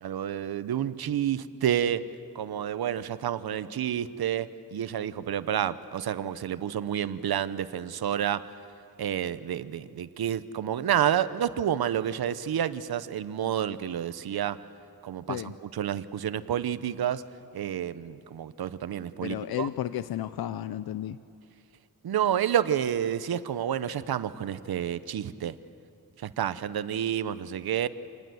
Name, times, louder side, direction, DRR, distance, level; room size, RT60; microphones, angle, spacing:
voice 1, 0.0-2.1 2.3-8.4 9.0-14.6 15.0-17.2 17.5-19.7 22.0-25.6 26.2-27.9, right 10 dB, 90° right, 14 dB, 0.8 m, -29 dB
voice 2, 19.2-21.2, left 11 dB, 90° left, 14 dB, 0.6 m, -32 dB
27.0 x 19.5 x 7.8 m, 2.5 s
wide cardioid pair, 155°, 36 cm